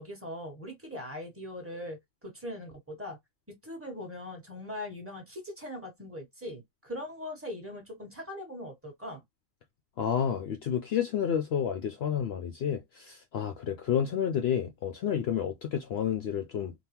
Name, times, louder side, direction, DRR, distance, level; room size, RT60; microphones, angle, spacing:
voice 1, 0.0-3.2 3.6-9.2, left 1 dB, 10° right, 1.3 m, -41 dB
voice 2, 10.0-16.7, left 8 dB, 65° left, 0.7 m, -30 dB
3.6 x 2.3 x 2.8 m
omnidirectional pair, 1.4 m